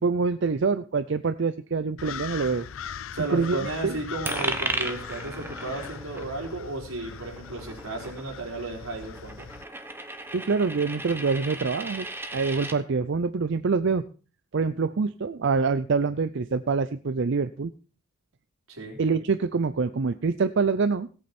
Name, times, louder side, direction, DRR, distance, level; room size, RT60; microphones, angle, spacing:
voice 1, 0.0-2.7 3.3-3.9 10.3-12.1 12.3-14.0 14.5-17.7 19.0-21.1, right 4 dB, 60° right, 12 dB, 0.5 m, -25 dB
sound 1, 2.0-9.6, left 7 dB, 70° left, 0.5 m, -40 dB
voice 2, 3.1-9.5 18.7-19.0, right 2 dB, 90° right, 1 dB, 4.2 m, -34 dB
Coin (dropping), 4.3-12.8, right 2 dB, 10° right, 1.0 m, -36 dB
17.0 x 8.6 x 4.3 m, 0.37 s
head